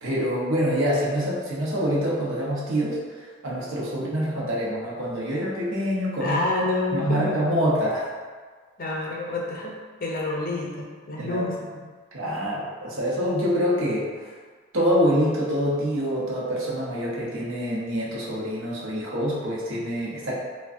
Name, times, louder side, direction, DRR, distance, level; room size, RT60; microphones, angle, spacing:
voice 1, 0.0-6.4 6.9-8.1 11.2-11.5 12.1-14.1 14.7-20.3, equal, 60° right, -5 dB, 0.8 m, -26 dB
voice 2, 6.2-7.4 8.8-9.7 10.0-11.5, left 2 dB, 40° left, -2 dB, 0.6 m, -28 dB
4.6 x 2.2 x 2.6 m, 1.5 s
head